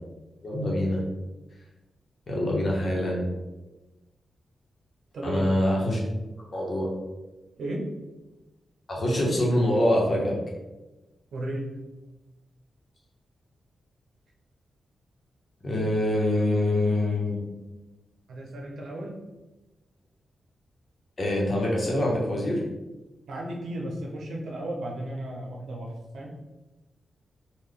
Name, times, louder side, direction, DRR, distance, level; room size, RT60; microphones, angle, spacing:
voice 1, 0.4-1.0 2.3-3.2 5.2-6.0 6.5-6.9 8.9-10.3 15.6-17.4 21.2-22.6, left 1 dB, 40° left, -3 dB, 1.0 m, -25 dB
voice 2, 5.1-5.4 7.6-7.8 11.3-11.7 18.3-19.2 23.3-26.3, right 1 dB, 85° right, -1 dB, 0.8 m, -34 dB
3.9 x 2.4 x 3.3 m, 1.1 s
wide cardioid pair, 130°, 0 cm